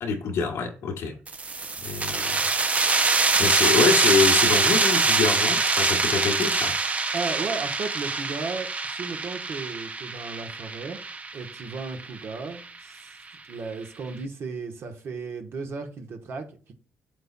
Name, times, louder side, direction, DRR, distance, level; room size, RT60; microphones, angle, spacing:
voice 1, 0.0-1.1 1.8-6.7, left 5 dB, 85° left, 1.6 m, -26 dB
sound 1, 1.3-12.6, right 4 dB, 30° right, 0.5 m, -24 dB
voice 2, 7.1-8.7 8.9-11.0 11.3-13.2 13.5-16.7, right 4 dB, 65° right, 1.1 m, -35 dB
7.8 x 7.0 x 2.2 m
cardioid pair, 105°, 5 cm